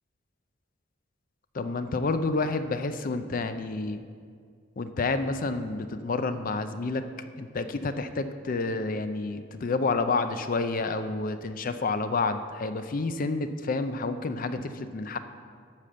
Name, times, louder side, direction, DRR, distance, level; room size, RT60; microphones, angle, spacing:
voice 1, 1.5-4.0 4.8-15.2, left 3 dB, 45° left, 9 dB, 0.5 m, -29 dB
12.0 x 5.1 x 7.6 m, 2.1 s
head